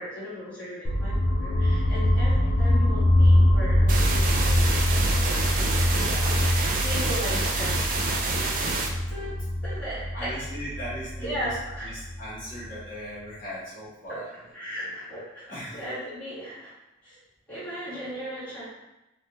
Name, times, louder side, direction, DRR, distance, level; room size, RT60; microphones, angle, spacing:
voice 1, 0.0-7.8 8.3-8.6 9.1-9.4 9.6-10.3 11.2-11.9 14.1-14.2 14.5-16.7 17.0-17.2 17.5-18.6, equal, 5° left, -13 dB, 1.4 m, -37 dB
sound 1, 0.8-12.8, left 1 dB, 70° left, 0.4 m, -24 dB
sound 2, 3.9-8.9, right 3 dB, 45° right, 0.4 m, -28 dB
voice 2, 10.1-14.3 15.5-15.8, equal, 40° left, -11 dB, 1.1 m, -38 dB
3.3 x 2.3 x 2.9 m, 0.97 s
head